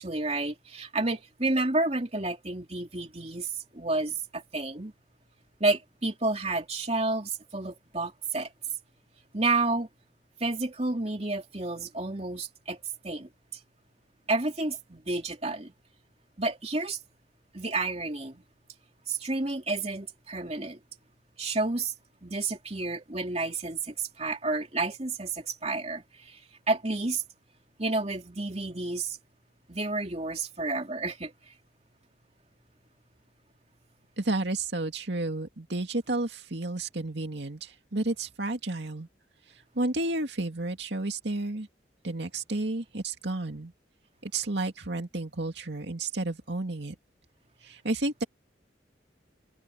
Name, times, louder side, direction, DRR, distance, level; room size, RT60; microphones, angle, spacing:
voice 1, 0.0-3.5 3.7-4.9 5.6-8.5 9.3-9.9 10.4-12.8 13.0-13.3 14.3-15.7 16.4-17.0 17.5-18.4 19.1-20.8 21.4-21.9 22.2-26.4 26.7-27.2 27.8-29.2 29.7-31.3, right 2 dB, 35° right, 2.9 m, -30 dB
voice 2, 34.2-39.1 39.8-41.7 42.0-43.7 44.2-47.0 47.6-48.2, right 2 dB, 70° right, 2.3 m, -31 dB
head